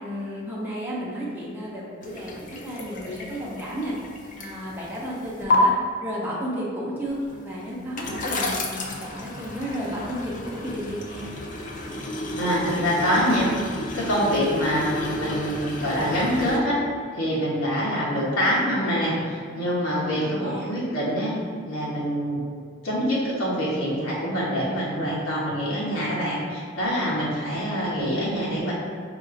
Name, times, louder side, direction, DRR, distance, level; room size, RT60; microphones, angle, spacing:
voice 1, 0.0-4.0 4.4-5.7 6.0-11.3 20.1-20.7, equal, 10° right, -6 dB, 0.6 m, -32 dB
sound 1, 2.0-5.6 7.1-16.6, left 2 dB, 40° left, 0.5 m, -32 dB
voice 2, 12.4-13.5 13.9-16.8 17.1-21.4 21.6-22.4 22.8-28.7, equal, 90° left, -7 dB, 1.1 m, -25 dB
5.1 x 2.4 x 3.7 m, 2.2 s
head